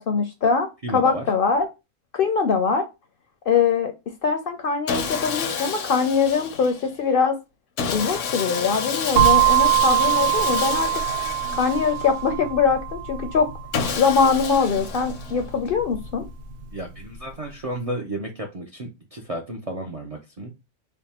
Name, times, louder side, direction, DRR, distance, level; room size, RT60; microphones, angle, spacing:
voice 1, 0.0-1.7 2.1-2.8 3.5-3.9 4.2-7.4 7.9-10.9 11.5-13.5 13.9-16.2, left 5 dB, 60° left, 0.6 m, -22 dB
voice 2, 0.8-1.2 16.7-20.5, right 1 dB, 45° right, 0.4 m, -32 dB
Sawing, 4.9-6.9 7.8-12.3 13.7-15.5, left 6 dB, 80° left, 1.0 m, -29 dB
sound 1, 9.2-17.0, right 13 dB, 65° right, 0.8 m, -24 dB
3.4 x 2.1 x 4.1 m
omnidirectional pair, 1.3 m